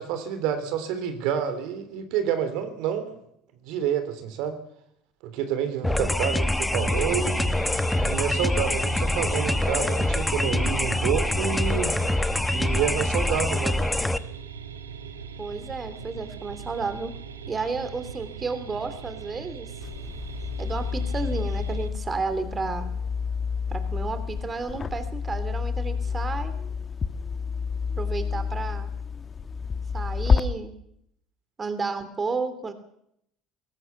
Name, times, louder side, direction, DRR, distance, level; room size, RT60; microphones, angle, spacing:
voice 1, 0.0-3.2 3.6-4.6 5.2-7.5 8.0-11.9 12.5-13.9, right 9 dB, 65° right, 10 dB, 3.3 m, -28 dB
sound 1, 5.8-14.2, left 1 dB, 10° left, 1.3 m, -25 dB
sound 2, 6.7-21.9, right 6 dB, 85° right, 1.6 m, -40 dB
voice 2, 15.4-17.1 17.5-19.7 20.6-22.9 23.7-26.6 28.0-28.9 29.9-30.7 31.6-32.7, right 4 dB, 30° right, 11 dB, 3.0 m, -32 dB
sound 3, 19.8-30.4, left 6 dB, 35° left, 1.4 m, -29 dB
21.0 x 18.0 x 7.2 m, 0.74 s
hypercardioid pair, 65°, 0 cm